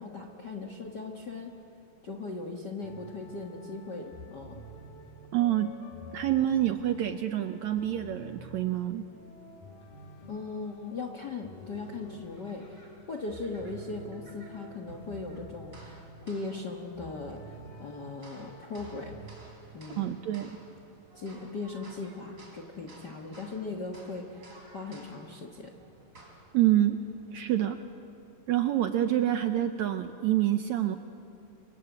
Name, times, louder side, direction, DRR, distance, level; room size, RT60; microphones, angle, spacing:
voice 1, 0.0-1.5 2.0-4.6 10.3-19.1 19.7-20.1 21.1-25.7, left 3 dB, 50° left, 3 dB, 1.3 m, -39 dB
sound 1, 2.8-19.3, left 1 dB, 80° left, 4.0 m, -49 dB
voice 2, 5.3-5.7 6.1-9.0 20.0-20.5 26.5-27.0 27.3-27.8 28.5-31.0, right 12 dB, 75° right, 8 dB, 1.7 m, -27 dB
sound 2, 11.6-27.7, right 1 dB, 20° right, 3.9 m, -56 dB
29.0 x 24.0 x 8.3 m, 2.8 s
omnidirectional pair, 4.0 m